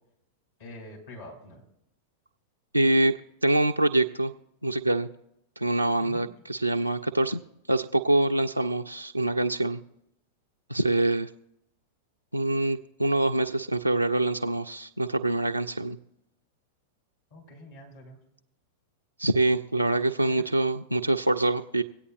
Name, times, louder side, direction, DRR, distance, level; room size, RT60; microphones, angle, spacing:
voice 1, 0.6-1.6 6.0-6.3 17.3-18.2 19.8-20.5, left 1 dB, 60° left, -2 dB, 3.4 m, -46 dB
voice 2, 2.7-3.2 3.4-4.3 4.6-5.1 5.6-7.4 7.7-9.8 10.7-11.3 12.3-16.0 19.2-21.8, right 2 dB, 85° right, 4 dB, 0.3 m, -25 dB
24.5 x 8.5 x 2.5 m, 0.83 s
figure-of-eight pair, 90°, 0 cm